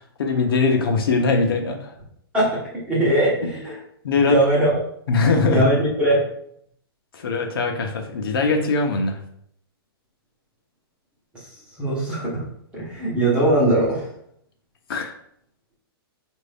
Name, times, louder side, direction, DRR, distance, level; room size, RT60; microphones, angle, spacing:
voice 1, 0.0-1.9 4.0-4.4 5.1-5.7 7.1-9.2 14.9-15.1, left 4 dB, 65° left, 3 dB, 0.8 m, -21 dB
voice 2, 2.3-3.8 4.3-4.8 5.5-6.3 11.3-12.5 12.7-14.1, right 1 dB, 5° right, -6 dB, 0.9 m, -21 dB
5.1 x 2.6 x 3.4 m, 0.69 s
hypercardioid pair, 175°, 13 cm